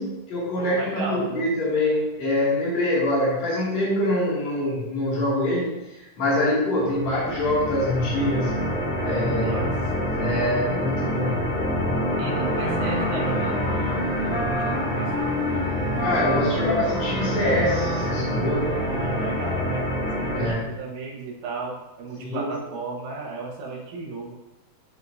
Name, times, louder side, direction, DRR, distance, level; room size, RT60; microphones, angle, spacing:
voice 1, 0.0-8.5 9.0-9.6 10.1-11.5 16.0-18.7 20.3-20.7 22.2-22.5, left 1 dB, 65° left, -7 dB, 3.5 m, -25 dB
voice 2, 0.6-1.5 9.0-9.7 12.2-15.4 18.8-24.4, right 3 dB, 90° right, -1 dB, 2.6 m, -35 dB
sound 1, 6.8-20.5, equal, 5° left, 1.7 m, -27 dB
Wind instrument woodwind instrument, 12.2-19.7, left 1 dB, 35° left, 1.6 m, -31 dB
10.5 x 5.4 x 2.7 m, 0.98 s
omnidirectional pair, 3.3 m